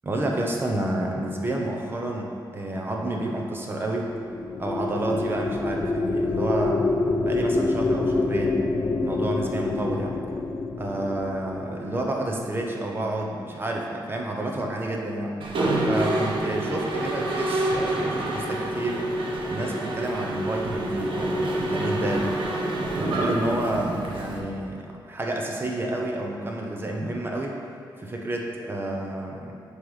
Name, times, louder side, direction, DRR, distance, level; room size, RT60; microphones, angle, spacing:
voice 1, 0.0-4.2 4.6-6.8 7.2-8.6 9.0-10.2 10.8-15.3 15.9-19.1 19.5-22.3 22.9-27.6 28.0-29.5, right 1 dB, 25° right, 0 dB, 0.9 m, -29 dB
sound 1, 4.1-12.6, left 3 dB, 30° left, 0.4 m, -27 dB
Mechanisms, 15.4-24.4, right 1 dB, 75° right, 1.1 m, -27 dB
9.4 x 3.3 x 4.9 m, 2.4 s
wide cardioid pair, 150°, 9 cm